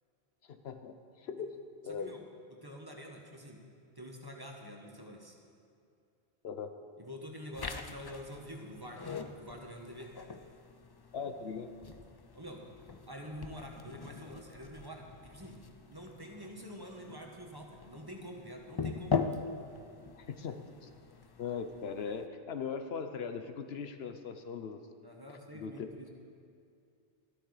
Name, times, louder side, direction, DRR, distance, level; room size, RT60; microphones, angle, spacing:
voice 1, 0.5-1.5 1.8-2.1 6.4-6.7 11.1-11.7 20.2-20.9 21.4-24.8 25.3-25.9, left 6 dB, 70° left, 8 dB, 0.9 m, -40 dB
voice 2, 1.9-2.2 2.5-3.6 3.9-5.4 7.0-10.1 12.3-12.6 13.1-15.6 15.9-19.2 25.0-26.1, equal, 20° right, 0 dB, 1.3 m, -47 dB
sound 1, 7.5-22.3, left 5 dB, 40° left, 0.3 m, -42 dB
13.5 x 12.5 x 4.8 m, 2.4 s
omnidirectional pair, 1.1 m